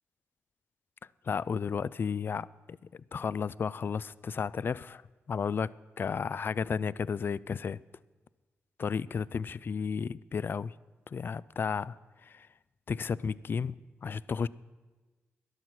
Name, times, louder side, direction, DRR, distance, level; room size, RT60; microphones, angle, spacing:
voice 1, 1.2-5.0 5.3-7.8 8.8-10.7 11.1-12.0 12.2-12.5 12.9-13.8 14.0-14.5, left 6 dB, 50° left, 0.3 m, -33 dB
13.0 x 11.0 x 6.1 m
cardioid pair, 85°, 5 cm